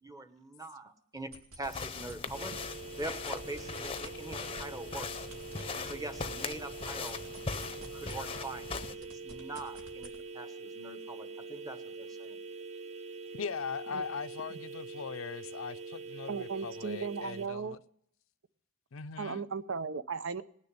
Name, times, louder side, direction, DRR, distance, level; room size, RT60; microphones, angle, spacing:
voice 1, 0.0-2.6 3.0-5.3 5.7-7.2 7.9-12.4, right 2 dB, 15° right, 1.2 m, -43 dB
sound 1, 1.2-2.7 3.0-8.5 8.7-10.2, right 1 dB, 90° right, 2.6 m, -50 dB
sound 2, 1.6-8.9, left 4 dB, 25° left, 0.7 m, -40 dB
sound 3, 2.3-17.5, right 4 dB, 35° right, 0.8 m, -44 dB
voice 2, 13.3-17.8 18.9-19.5, left 6 dB, 70° left, 0.5 m, -40 dB
voice 3, 16.3-17.8 19.2-20.4, right 5 dB, 65° right, 0.8 m, -36 dB
19.5 x 6.7 x 9.8 m
head